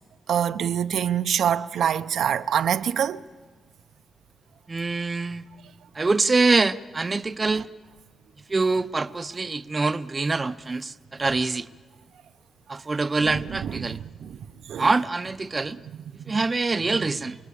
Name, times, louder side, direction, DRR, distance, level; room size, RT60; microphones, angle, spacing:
voice 1, 0.3-3.2 7.4-7.6 13.2-14.4 14.7-14.9 16.9-17.0, right 9 dB, 80° right, 0.6 m, -26 dB
voice 2, 4.7-5.4 6.0-7.6 8.5-10.9 11.2-11.6 12.7-14.0 14.8-15.8 16.3-17.4, right 3 dB, 25° right, 0.7 m, -24 dB
27.0 x 19.5 x 8.5 m
cardioid pair, 110°, 0 cm